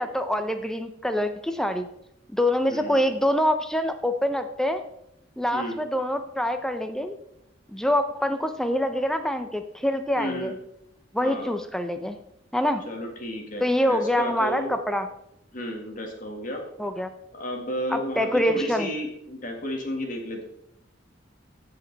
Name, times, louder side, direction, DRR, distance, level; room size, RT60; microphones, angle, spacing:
voice 1, 0.0-1.9 2.3-4.8 5.4-7.2 7.7-10.5 11.1-12.2 12.5-12.8 13.6-15.1 16.8-17.1 17.9-18.9, left 1 dB, 5° left, 8 dB, 0.6 m, -25 dB
voice 2, 2.7-3.1 5.5-5.8 10.2-10.5 11.2-11.5 12.9-14.7 15.5-16.6 17.3-20.4, equal, 45° left, 2 dB, 1.8 m, -32 dB
15.5 x 5.3 x 4.0 m, 0.80 s
head